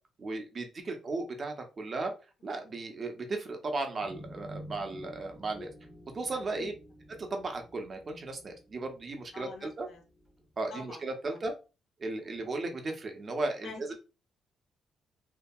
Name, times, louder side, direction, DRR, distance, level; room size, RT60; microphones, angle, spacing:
voice 1, 0.2-2.1 2.4-5.7 6.1-6.7 7.3-9.9 10.6-11.5 12.0-13.9, right 3 dB, 40° right, 4 dB, 0.7 m, -35 dB
voice 2, 2.4-3.0 6.5-6.7 9.3-10.0 10.7-11.4 12.2-12.4 13.6-13.9, left 3 dB, 70° left, 2 dB, 1.0 m, -48 dB
sound 1, 4.0-10.6, equal, 5° left, 1.0 m, -50 dB
2.7 x 2.6 x 2.3 m, 0.31 s
cardioid pair, 90°, 0 cm